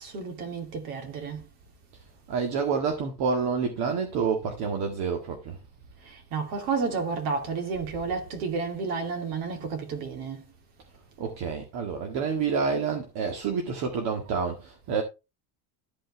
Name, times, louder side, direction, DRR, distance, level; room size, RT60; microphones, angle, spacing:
voice 1, 0.0-1.5 6.0-10.5, right 4 dB, 90° right, 3.0 m, -31 dB
voice 2, 2.3-5.6 11.2-15.0, right 5 dB, 60° right, 1.9 m, -28 dB
13.0 x 5.5 x 3.3 m
cardioid pair, 145°, 43 cm